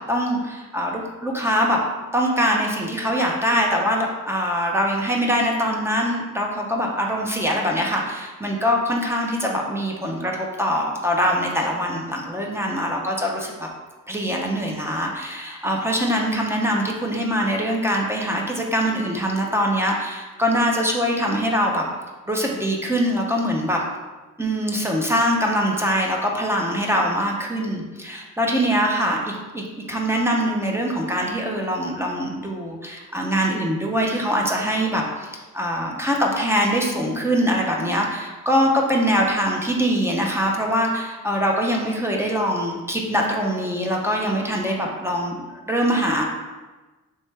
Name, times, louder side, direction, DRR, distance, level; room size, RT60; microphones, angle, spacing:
voice 1, 0.1-1.8 2.1-13.7 14.1-21.8 22.3-23.8 24.4-45.3 45.7-46.2, equal, 10° right, -1 dB, 0.5 m, -23 dB
3.2 x 3.2 x 4.5 m, 1.2 s
wide cardioid pair, 150°, 33 cm